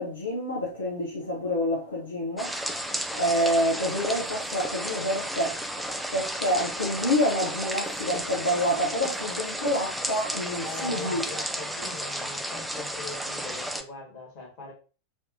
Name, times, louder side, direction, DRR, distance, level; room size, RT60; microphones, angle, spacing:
voice 1, 0.0-2.6 3.1-5.6 6.1-11.2, equal, 75° left, 0.6 m, -27 dB
sound 1, 2.4-13.8, right 1 dB, ahead, 0.3 m, -33 dB
voice 2, 10.6-14.7, left 3 dB, 45° left, 1.5 m, -41 dB
3.5 x 2.5 x 2.6 m
figure-of-eight pair, 90°, 0 cm